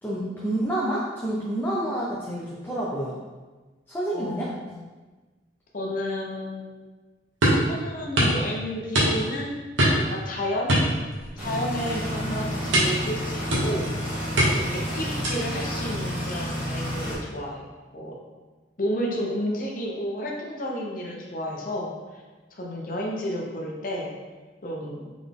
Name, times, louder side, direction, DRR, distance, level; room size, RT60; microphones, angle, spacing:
voice 1, 0.0-3.2 3.9-4.5 11.9-12.5, right 1 dB, 10° left, -6 dB, 0.5 m, -29 dB
voice 2, 4.1-4.8 5.7-6.7 7.7-9.6 9.9-10.8 11.4-13.9 14.5-18.2 18.8-22.2 22.5-24.1 24.6-25.1, equal, 45° left, -1 dB, 0.8 m, -31 dB
sound 1, 7.4-7.7 8.2-8.4 8.9-9.4 9.8-10.1 10.7-11.5 11.8-12.0 12.7-13.1 13.5-13.9 14.4-14.8 15.2-15.6, equal, 80° right, 1.1 m, -22 dB
sound 2, 11.4-17.1, equal, 10° right, 1.4 m, -30 dB
3.9 x 3.5 x 3.6 m, 1.3 s
head